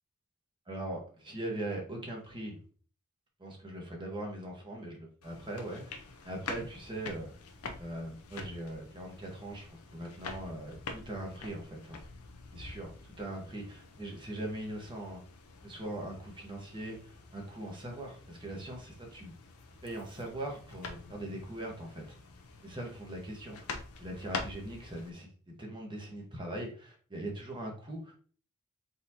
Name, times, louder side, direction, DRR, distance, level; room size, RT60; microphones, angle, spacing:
voice 1, 0.7-2.6 3.4-5.9 6.2-7.3 7.8-12.0 12.5-12.9 13.2-15.2 15.6-19.3 19.8-22.0 22.6-23.6 24.0-28.2, right 1 dB, 20° right, 0 dB, 1.2 m, -41 dB
sound 1, 5.2-25.1, left 4 dB, 70° left, 0.7 m, -46 dB
4.1 x 4.0 x 2.9 m, 0.42 s
head